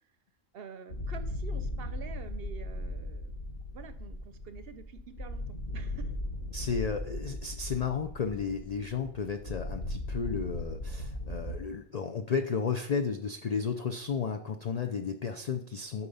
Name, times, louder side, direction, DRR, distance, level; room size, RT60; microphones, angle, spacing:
voice 1, 0.5-3.3 3.7-6.1, right 6 dB, 60° right, 10 dB, 0.7 m, -47 dB
sound 1, 0.9-11.6, left 1 dB, 40° left, 0.9 m, -38 dB
voice 2, 6.5-16.1, left 6 dB, 90° left, 6 dB, 0.3 m, -33 dB
6.9 x 5.2 x 5.4 m, 0.64 s
omnidirectional pair, 1.3 m